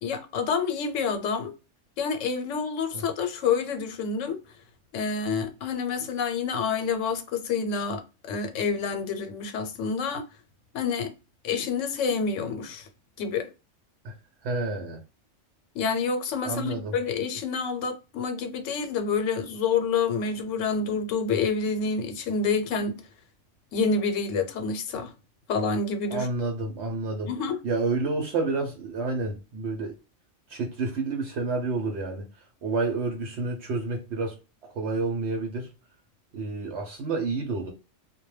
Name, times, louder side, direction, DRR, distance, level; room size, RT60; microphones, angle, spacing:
voice 1, 0.0-1.5 2.0-4.4 4.9-10.3 10.7-11.1 11.4-12.9 13.2-13.5 15.7-23.0 23.7-25.1 25.5-26.3 27.3-27.6, left 5 dB, 90° left, 1.0 m, -28 dB
voice 2, 14.4-15.0 16.4-16.9 26.1-27.3 27.6-29.9 30.5-32.3 32.6-34.4 34.6-35.7 36.3-37.7, right 3 dB, 65° right, 0.8 m, -29 dB
2.2 x 2.1 x 3.0 m
omnidirectional pair, 1.3 m